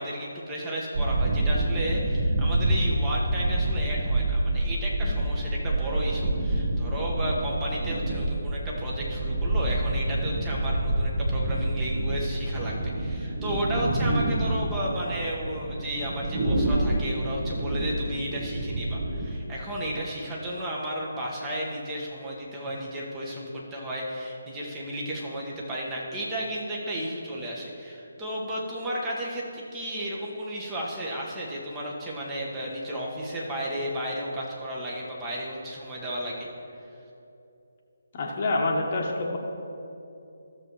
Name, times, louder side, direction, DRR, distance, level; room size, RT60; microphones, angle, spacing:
voice 1, 0.0-36.5, right 1 dB, 15° right, -4 dB, 1.4 m, -33 dB
sound 1, 0.9-19.4, right 1 dB, 40° right, 1.2 m, -27 dB
voice 2, 38.1-39.4, left 2 dB, 40° left, -1 dB, 1.1 m, -26 dB
14.0 x 6.9 x 3.1 m, 2.8 s
figure-of-eight pair, 150°, 0 cm